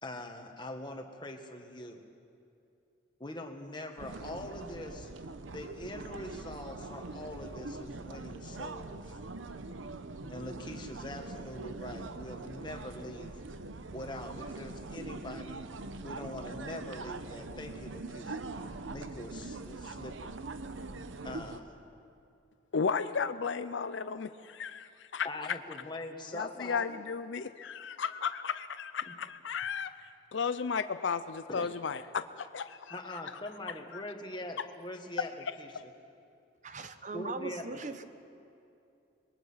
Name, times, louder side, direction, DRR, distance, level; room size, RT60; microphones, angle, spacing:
voice 1, 0.0-2.0 3.2-5.1 5.5-9.2 10.3-13.4 13.9-15.6 16.0-18.4 18.9-20.3 21.2-21.8 25.2-27.0 27.4-27.5 29.1-29.2 31.5-31.7 32.9-35.3 35.6-35.7 37.1-37.8, left 1 dB, 25° left, 3 dB, 1.6 m, -43 dB
sound 1, 4.0-21.6, right 3 dB, 85° right, 0.9 m, -43 dB
voice 2, 22.7-25.3 26.3-33.2 33.9-34.0, left 6 dB, 75° left, 11 dB, 0.5 m, -34 dB
voice 3, 36.6-38.0, right 3 dB, 40° right, 10 dB, 1.0 m, -40 dB
26.0 x 21.0 x 5.8 m, 2.6 s
head